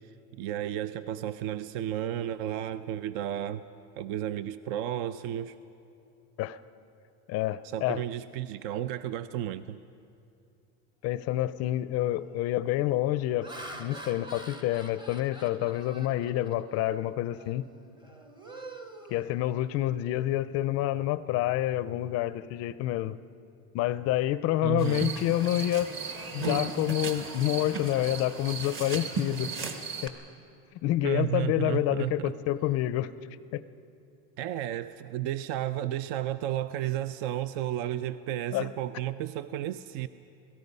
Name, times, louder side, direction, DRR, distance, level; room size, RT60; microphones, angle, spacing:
voice 1, 0.3-3.6 4.0-5.6 7.6-9.8 24.6-25.1 31.0-32.3 34.4-40.1, right 12 dB, 60° right, 13 dB, 0.6 m, -32 dB
voice 2, 7.3-8.0 11.0-13.5 13.8-17.7 19.1-23.2 23.7-25.9 26.3-29.5 30.0-30.1 30.8-33.1 33.5-33.6 38.5-38.7, left 14 dB, 40° left, 15 dB, 0.4 m, -28 dB
Laughter, 11.3-11.6 12.2-12.5 13.1-16.9 17.3-17.6 18.0-19.9, right 2 dB, 10° right, 0.8 m, -46 dB
sound 1, 24.8-30.1, right 4 dB, 30° right, 1.3 m, -35 dB
28.0 x 18.0 x 5.4 m, 2.6 s
cardioid pair, 165°, 40 cm